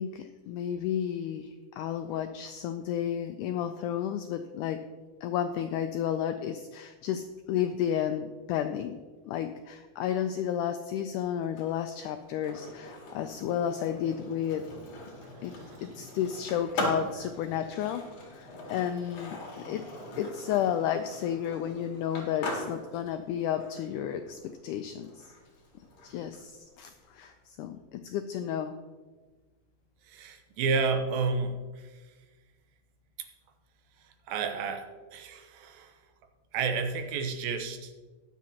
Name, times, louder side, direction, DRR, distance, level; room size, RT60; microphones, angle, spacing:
voice 1, 0.0-4.8 5.2-9.0 9.2-14.6 15.4-15.5 15.8-19.8 20.2-25.3 26.0-28.8, left 9 dB, 85° left, 8 dB, 1.8 m, -32 dB
Skateboard, 11.4-27.3, left 1 dB, 60° left, 3.5 m, -41 dB
voice 2, 30.1-31.9 34.3-34.9 35.1-35.9 36.5-37.9, right 4 dB, 90° right, 7 dB, 2.7 m, -31 dB
20.0 x 7.4 x 2.9 m, 1.3 s
omnidirectional pair, 4.1 m